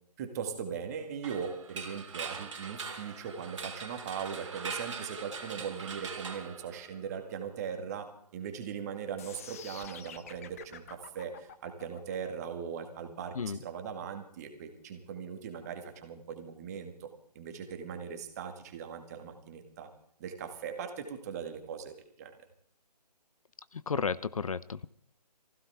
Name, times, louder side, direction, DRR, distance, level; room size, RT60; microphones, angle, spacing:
voice 1, 0.2-17.1 17.4-19.9 20.2-22.3, right 7 dB, 25° right, 6 dB, 1.9 m, -39 dB
sound 1, 1.2-7.2, right 5 dB, 45° right, 2.7 m, -42 dB
sound 2, 9.2-15.2, left 8 dB, 20° left, 0.7 m, -49 dB
voice 2, 23.7-24.9, left 5 dB, 55° left, 17 dB, 0.6 m, -33 dB
23.5 x 15.5 x 3.5 m, 0.63 s
figure-of-eight pair, 150°, 21 cm